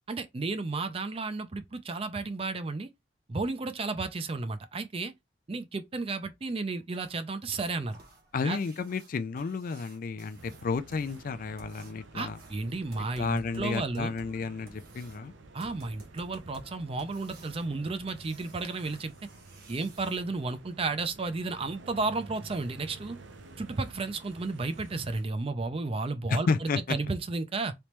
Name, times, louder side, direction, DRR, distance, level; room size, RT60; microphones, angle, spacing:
voice 1, 0.1-2.9 3.3-5.1 5.5-8.0 8.4-8.6 12.1-14.1 15.5-19.1 19.7-23.2 23.6-27.7, right 3 dB, 30° right, 0.5 m, -33 dB
sound 1, 7.0-20.2 22.5-22.6 23.1-23.2 23.6-23.7 24.2-24.3 24.8-24.9 25.3-25.4 25.9-26.0, right 2 dB, 60° right, 1.2 m, -54 dB
voice 2, 8.3-12.4 13.2-15.3 26.3-27.0, left 4 dB, 50° left, 0.4 m, -32 dB
sound 2, 10.4-25.2, right 2 dB, 90° right, 0.7 m, -51 dB
3.4 x 3.0 x 3.0 m
head